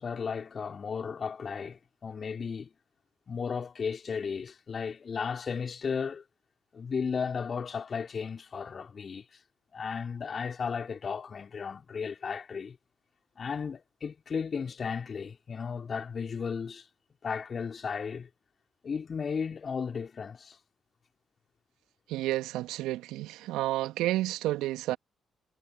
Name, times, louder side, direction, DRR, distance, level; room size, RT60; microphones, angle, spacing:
voice 1, 0.0-2.7 3.3-6.2 6.7-9.3 9.7-12.8 13.4-16.9 17.2-18.3 18.8-20.6, left 6 dB, 45° left, 3.7 m, -34 dB
voice 2, 22.1-25.0, right 16 dB, 70° right, 2.2 m, -30 dB
figure-of-eight pair, 40°, 0 cm